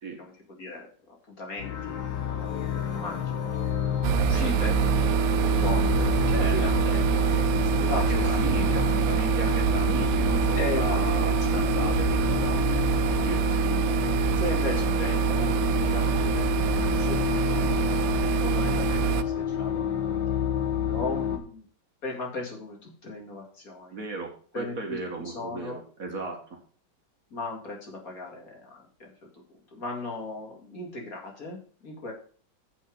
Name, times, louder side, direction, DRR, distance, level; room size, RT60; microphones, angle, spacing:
voice 1, 0.2-3.3 3.7-4.8 5.6-9.0 10.6-11.8 12.3-12.6 14.3-18.0 18.4-21.7 22.0-24.0 24.5-25.8 27.3-32.1, left 2 dB, 50° left, 0 dB, 2.6 m, -37 dB
sound 1, 1.6-21.4, left 9 dB, 75° left, 2.2 m, -28 dB
sound 2, 4.0-19.2, right 18 dB, 85° right, 1.3 m, -25 dB
voice 2, 6.3-6.6 6.9-7.0 7.3-7.6 7.9-12.6 13.2-13.5 23.9-26.6, right 3 dB, 50° right, 3 dB, 1.9 m, -35 dB
7.2 x 5.8 x 7.1 m, 0.43 s
omnidirectional pair, 2.0 m